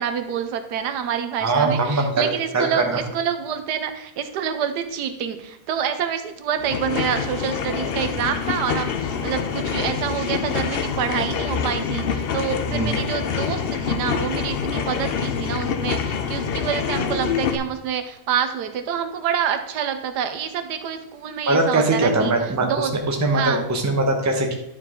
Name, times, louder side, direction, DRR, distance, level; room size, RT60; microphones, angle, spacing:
voice 1, 0.0-22.3 22.6-22.9 23.3-23.6, right 8 dB, 90° right, 9 dB, 1.3 m, -27 dB
voice 2, 1.4-2.3 2.5-3.0 12.7-12.9 21.5-24.6, right 2 dB, 15° right, 2 dB, 0.8 m, -21 dB
sound 1, 6.6-17.5, left 6 dB, 75° left, 0.5 m, -26 dB
11.0 x 4.7 x 3.7 m, 0.84 s
omnidirectional pair, 1.7 m